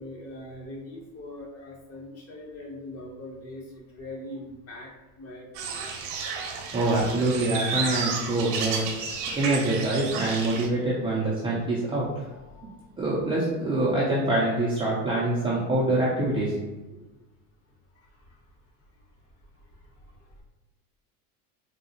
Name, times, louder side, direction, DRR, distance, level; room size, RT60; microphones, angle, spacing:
voice 1, 0.0-4.9 5.2-5.8 12.5-12.9 18.0-18.4 19.7-19.9 20.2-20.3, left 1 dB, 30° left, -2 dB, 0.8 m, -42 dB
sound 1, 5.5-10.7, right 5 dB, 65° right, 0.8 m, -32 dB
voice 2, 6.7-8.8 9.3-12.2 13.0-16.5, right 2 dB, 10° right, -7 dB, 0.3 m, -25 dB
3.6 x 2.0 x 2.7 m, 1.2 s
supercardioid pair, 120°, 47 cm